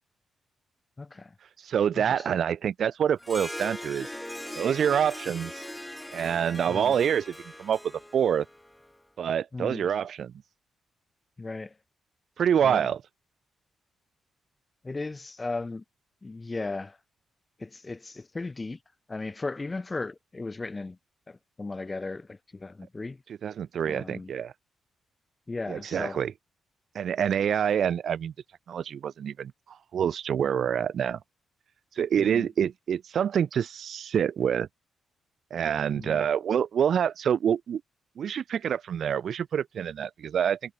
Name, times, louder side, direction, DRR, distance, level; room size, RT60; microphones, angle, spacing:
voice 1, 1.0-1.3 1.9-2.4 6.7-6.9 9.5-9.9 11.4-11.7 12.6-12.9 14.8-15.8 16.2-17.0 17.6-18.8 19.1-21.0 21.3-23.2 23.9-24.3 25.5-26.2 32.2-32.5 35.9-36.2, left 3 dB, 25° left, 3.9 m, -36 dB
voice 2, 1.6-4.1 4.6-5.6 6.1-7.8 8.1-8.5 9.2-10.3 12.4-13.0 23.4-24.5 25.7-26.3 27.0-28.3 28.7-31.2 32.0-34.7 35.5-37.8 38.2-40.7, right 8 dB, 65° right, 1.7 m, -26 dB
Harp, 3.2-8.9, left 1 dB, 5° left, 5.8 m, -40 dB
cardioid pair, 95°, 0 cm